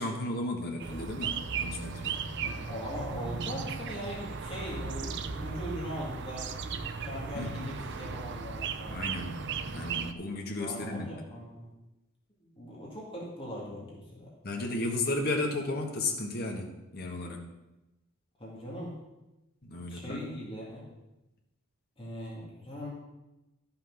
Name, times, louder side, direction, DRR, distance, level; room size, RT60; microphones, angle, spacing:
voice 1, 0.0-2.2 7.3-7.6 8.9-11.1 14.4-17.4 19.6-20.3, left 2 dB, 50° left, 1 dB, 1.5 m, -34 dB
sound 1, 0.8-10.1, right 5 dB, 55° right, 0.6 m, -36 dB
sound 2, 1.4-8.2, right 1 dB, 80° right, 2.1 m, -49 dB
voice 2, 2.4-6.5 7.0-9.1 10.5-11.7 12.4-14.3 18.4-19.0 19.9-20.9 22.0-22.9, equal, 25° left, -4 dB, 2.1 m, -40 dB
12.0 x 6.0 x 5.9 m, 1.0 s
head